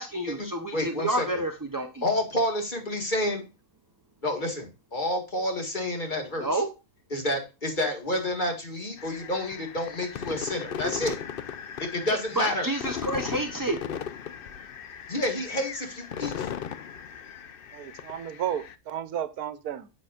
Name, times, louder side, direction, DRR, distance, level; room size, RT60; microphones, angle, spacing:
voice 1, 0.0-2.0 6.4-6.7 12.1-13.8, right 1 dB, 25° right, 0.5 m, -29 dB
voice 2, 0.7-1.3 2.0-3.4 4.2-6.6 7.1-11.1 11.9-12.7 15.1-16.5, left 1 dB, 30° left, 2.1 m, -29 dB
sound 1, 9.0-18.7, left 8 dB, 60° left, 0.6 m, -37 dB
voice 3, 17.7-19.9, right 10 dB, 85° right, 1.3 m, -33 dB
9.7 x 7.1 x 2.4 m
omnidirectional pair, 1.5 m